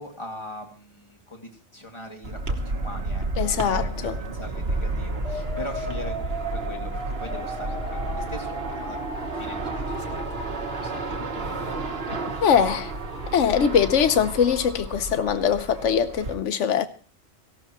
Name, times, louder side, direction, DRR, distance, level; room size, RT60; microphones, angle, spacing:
voice 1, 0.0-3.9 4.3-9.0 9.4-10.2 10.6-11.9, left 1 dB, 25° left, 2.6 m, -41 dB
sound 1, 2.2-16.3, right 2 dB, 55° right, 1.6 m, -31 dB
voice 2, 3.4-4.2 12.4-12.9 13.3-16.9, left 7 dB, 85° left, 1.2 m, -22 dB
sound 2, 5.2-15.2, equal, 55° left, 6.7 m, -38 dB
17.5 x 16.0 x 3.1 m
omnidirectional pair, 1.2 m